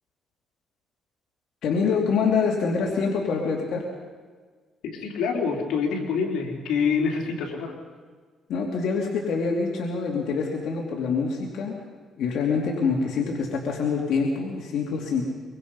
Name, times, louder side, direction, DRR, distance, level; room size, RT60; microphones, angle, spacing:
voice 1, 1.6-3.9 8.5-11.8 12.2-15.2, left 5 dB, 70° left, -1 dB, 2.9 m, -25 dB
voice 2, 4.8-7.7, left 5 dB, 85° left, 1 dB, 3.6 m, -26 dB
24.0 x 23.5 x 5.5 m, 1.5 s
cardioid pair, 105°, 0 cm